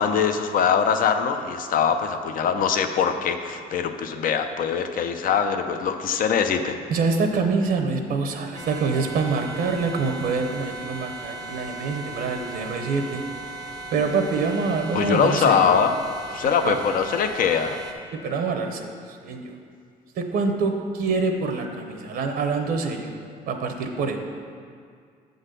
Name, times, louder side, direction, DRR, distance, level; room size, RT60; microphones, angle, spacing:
voice 1, 0.0-6.8 14.9-15.9 16.3-17.8, left 7 dB, 55° left, 7 dB, 0.6 m, -22 dB
voice 2, 6.9-13.2 13.9-15.7 16.6-16.8 18.1-18.9 19.2-19.5 20.2-23.1 23.5-24.2, right 4 dB, 60° right, 5 dB, 0.8 m, -25 dB
sound 1, 8.5-17.9, right 2 dB, 40° left, 1.0 m, -37 dB
8.2 x 3.9 x 6.6 m, 2.2 s
cardioid pair, 110°, 17 cm